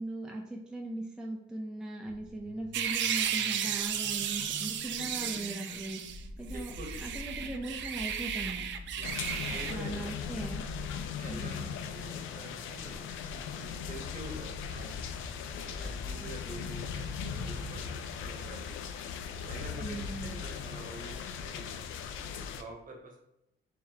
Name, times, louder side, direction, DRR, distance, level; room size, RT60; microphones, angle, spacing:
voice 1, 0.0-6.0 6.4-6.7 7.0-8.7 9.4-10.6 11.3-11.7 16.2-16.3 19.8-20.4, right 2 dB, 5° right, -1 dB, 0.5 m, -39 dB
sound 1, 2.1-18.7, left 1 dB, 40° left, 0.7 m, -47 dB
sound 2, 2.7-6.2 6.5-9.7, right 9 dB, 70° right, 0.4 m, -34 dB
voice 2, 5.0-5.8 6.4-7.2 8.9-9.1 9.4-10.1 11.0-14.9 15.6-18.8 19.5-21.7 22.2-23.2, right 2 dB, 40° right, 1 dB, 1.0 m, -47 dB
sound 3, 9.0-22.6, left 7 dB, 85° left, 0.4 m, -39 dB
3.3 x 3.0 x 3.5 m, 0.85 s
cardioid pair, 90°, 20 cm